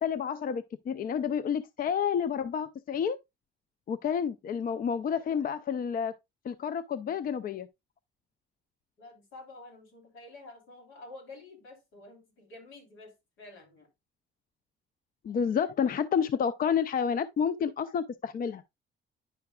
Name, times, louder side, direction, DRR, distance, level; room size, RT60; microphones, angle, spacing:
voice 1, 0.0-3.2 3.9-6.1 6.4-7.7 15.2-18.6, left 7 dB, 45° left, 0.4 m, -29 dB
voice 2, 9.0-13.9, left 2 dB, 80° left, 3.2 m, -49 dB
9.6 x 5.7 x 2.3 m
cardioid pair, 90°, 20 cm